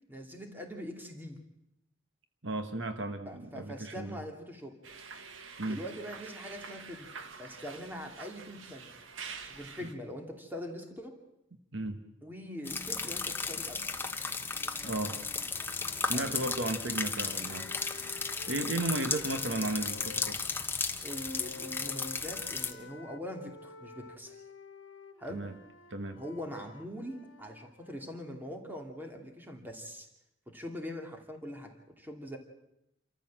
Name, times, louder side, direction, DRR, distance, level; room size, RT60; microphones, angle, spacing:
voice 1, 0.1-1.4 3.3-4.8 5.7-7.1 7.4-8.9 9.5-11.2 12.2-13.8 16.1-16.3 21.0-24.4 25.2-25.6 26.1-30.1 30.5-32.4, equal, 10° right, 3 dB, 2.6 m, -43 dB
voice 2, 2.4-4.2 5.6-5.8 9.8-9.9 11.7-12.0 14.8-15.2 16.0-17.7 18.5-20.4 25.3-25.5 25.9-26.2, right 2 dB, 65° right, 8 dB, 1.4 m, -34 dB
sound 1, 4.8-9.9, right 5 dB, 80° right, 1.6 m, -46 dB
sound 2, 12.7-22.7, left 4 dB, 10° left, 1.0 m, -35 dB
sound 3, 13.4-20.4 21.1-28.3, left 4 dB, 80° left, 1.3 m, -52 dB
28.0 x 14.0 x 7.5 m, 0.85 s
head